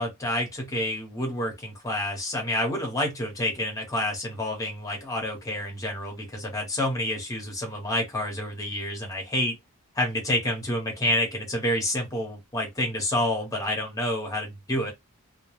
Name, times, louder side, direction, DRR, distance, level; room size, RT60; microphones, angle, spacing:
voice 1, 0.0-9.5 9.9-14.9, left 1 dB, 15° left, 0.9 m, -28 dB
2.3 x 2.2 x 3.0 m
head